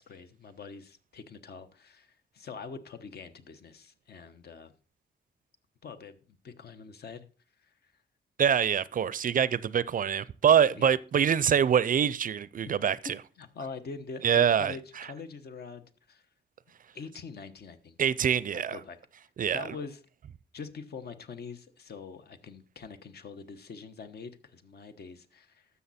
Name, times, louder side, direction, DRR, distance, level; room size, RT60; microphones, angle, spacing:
voice 1, 0.0-4.7 5.8-7.3 7.6-7.7 10.7-10.9 13.4-16.2 16.9-18.0 18.5-19.0 19.5-20.0 20.5-25.7, left 5 dB, 60° left, 1.1 m, -44 dB
voice 2, 8.4-13.2 14.2-14.8 18.0-18.8 19.4-19.6, right 8 dB, 50° right, 0.4 m, -25 dB
12.5 x 7.1 x 4.2 m
cardioid pair, 115°, 18 cm